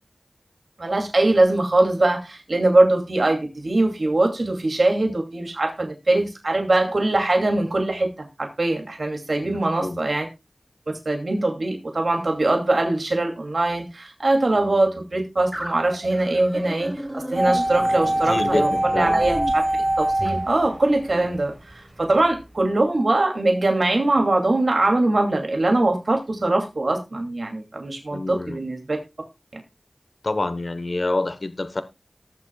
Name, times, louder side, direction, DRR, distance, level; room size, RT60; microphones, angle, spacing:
voice 1, 0.8-10.3 11.0-19.6 20.0-29.0 29.5-29.6, right 2 dB, 80° right, 2.5 m, -22 dB
voice 2, 9.4-10.0 18.3-19.2 21.2-21.4 28.1-28.6 30.2-31.8, left 2 dB, 65° left, 1.0 m, -27 dB
sound 1, 15.5-20.4, equal, 15° right, 3.0 m, -34 dB
sound 2, 17.4-21.5 21.7-21.8, right 1 dB, 30° right, 1.3 m, -23 dB
19.0 x 7.4 x 2.3 m
wide cardioid pair, 40°, 0 cm